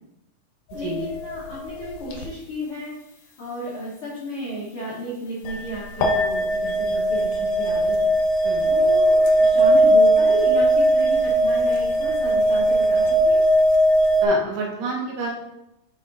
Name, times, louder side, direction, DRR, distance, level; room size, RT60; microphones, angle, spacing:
voice 1, 0.7-2.9 3.4-8.1 8.6-13.4, equal, 90° left, -7 dB, 1.2 m, -33 dB
sound 1, 0.7-1.8 2.1-2.2 5.4-5.7 6.0-14.3, right 1 dB, 75° left, 2.0 m, -19 dB
voice 2, 14.2-15.4, right 3 dB, 70° right, -2 dB, 2.5 m, -29 dB
6.4 x 5.6 x 2.6 m, 0.89 s
omnidirectional pair, 4.3 m